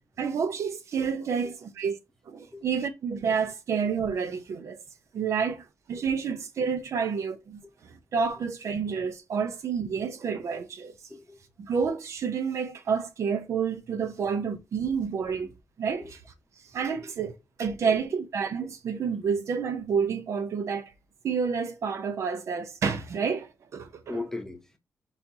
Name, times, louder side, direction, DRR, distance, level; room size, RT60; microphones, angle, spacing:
voice 1, 0.2-2.0 2.3-4.8 5.1-10.9 11.6-15.5 15.8-16.2 16.7-20.9 21.2-24.0, right 6 dB, 65° right, 0.7 m, -29 dB
voice 2, 24.1-24.8, left 2 dB, 10° left, 0.9 m, -38 dB
4.2 x 4.1 x 2.8 m
cardioid pair, 105°, 5 cm